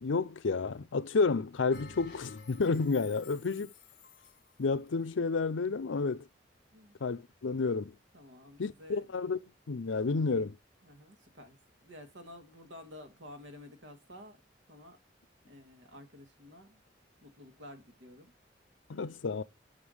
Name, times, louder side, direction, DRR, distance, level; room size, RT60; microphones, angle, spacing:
voice 1, 0.0-3.7 4.6-6.2 7.0-7.9 8.6-9.4 9.7-10.6 18.9-19.4, left 4 dB, 85° left, 0.6 m, -30 dB
Bell, 1.7-4.5, left 4 dB, 50° left, 1.9 m, -52 dB
voice 2, 8.1-9.1 10.8-14.4 14.7-15.0 15.5-16.8 17.2-18.3, left 1 dB, 75° right, 1.8 m, -51 dB
5.9 x 5.3 x 6.4 m
head